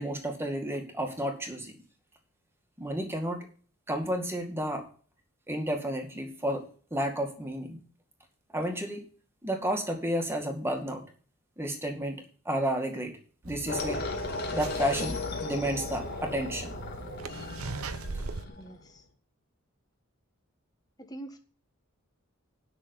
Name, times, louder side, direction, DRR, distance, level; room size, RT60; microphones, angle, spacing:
voice 1, 0.0-1.7 2.8-3.5 3.9-4.9 5.5-7.8 8.5-9.0 9.4-11.0 11.6-13.1 13.4-14.0 14.5-16.7, equal, 10° right, 3 dB, 2.2 m, -31 dB
sound 1, 13.4-18.5, right 3 dB, 85° right, 0.9 m, -41 dB
sound 2, 13.7-18.8, left 3 dB, 50° left, 2.1 m, -36 dB
voice 2, 18.6-19.0 21.0-21.4, right 1 dB, 20° left, 5 dB, 1.6 m, -44 dB
9.9 x 6.4 x 7.9 m, 0.41 s
head